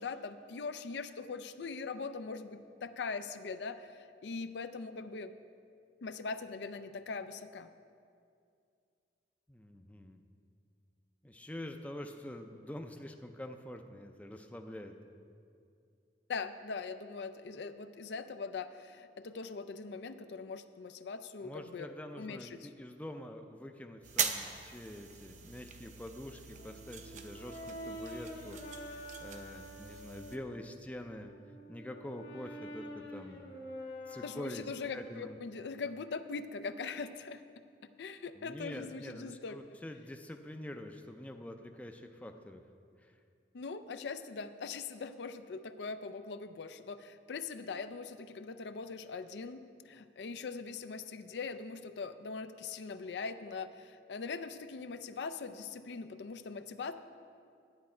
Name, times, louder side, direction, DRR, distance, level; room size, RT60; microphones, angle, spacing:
voice 1, 0.0-5.3 6.0-7.7 16.3-21.9 22.2-22.7 34.2-37.4 38.0-39.6 43.5-49.6 49.9-56.9, left 4 dB, 80° left, 11 dB, 0.4 m, -41 dB
voice 2, 9.5-10.2 11.2-14.9 21.4-31.3 31.7-33.5 34.1-34.6 34.9-35.4 38.3-42.6 43.0-43.1, left 1 dB, 10° left, 5 dB, 0.4 m, -46 dB
sound 1, 24.0-30.4, right 6 dB, 45° right, 0.6 m, -41 dB
Brass instrument, 26.6-30.5 31.1-35.2, equal, 65° left, 1.4 m, -47 dB
10.5 x 9.4 x 4.4 m, 2.4 s
head